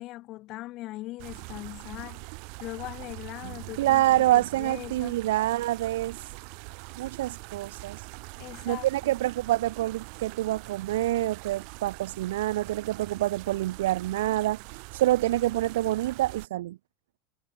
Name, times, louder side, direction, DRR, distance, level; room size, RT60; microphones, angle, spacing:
voice 1, 0.0-2.2 2.6-5.2 8.4-8.9, left 17 dB, 30° left, 1.0 m, -40 dB
sound 1, 1.2-16.5, right 40 dB or more, 45° right, 1.1 m, -43 dB
voice 2, 3.8-6.3 7.0-8.1 8.6-16.8, right 15 dB, 80° right, 1.2 m, -27 dB
supercardioid pair, 175°, 0 cm